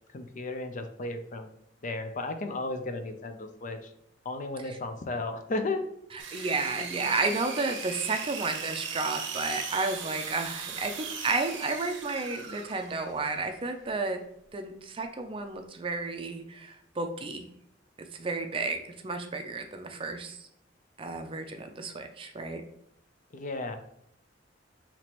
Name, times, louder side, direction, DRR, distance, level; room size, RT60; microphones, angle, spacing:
voice 1, 0.1-1.5 1.8-3.9 4.2-5.8 23.3-23.8, left 2 dB, 45° left, 7 dB, 0.5 m, -34 dB
sound 1, 6.2-13.2, right 6 dB, 90° right, 0.7 m, -38 dB
voice 2, 6.3-14.2 14.5-17.5 18.1-20.4 21.0-22.6, right 3 dB, 30° right, 5 dB, 0.5 m, -32 dB
5.8 x 2.9 x 3.0 m, 0.75 s
head